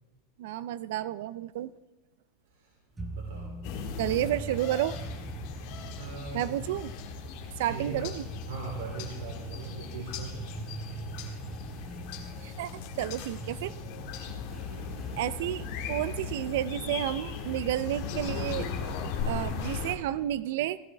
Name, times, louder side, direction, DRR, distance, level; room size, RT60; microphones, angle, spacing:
voice 1, 0.4-1.7 4.0-5.0 6.3-6.9 7.6-8.3 12.4-12.7 13.0-13.7 15.2-18.7 19.2-20.8, right 13 dB, 70° right, 16 dB, 0.4 m, -31 dB
voice 2, 2.4-3.6 5.4-6.6 7.6-8.1 8.5-10.5 13.2-13.3 14.6-15.2, right 3 dB, 85° right, -2 dB, 3.0 m, -42 dB
sound 1, 3.0-19.8, right 2 dB, 10° right, 1.2 m, -43 dB
sound 2, 3.6-20.0, left 6 dB, 55° left, 2.0 m, -38 dB
16.0 x 14.5 x 3.4 m, 1.1 s
supercardioid pair, 150°, 0 cm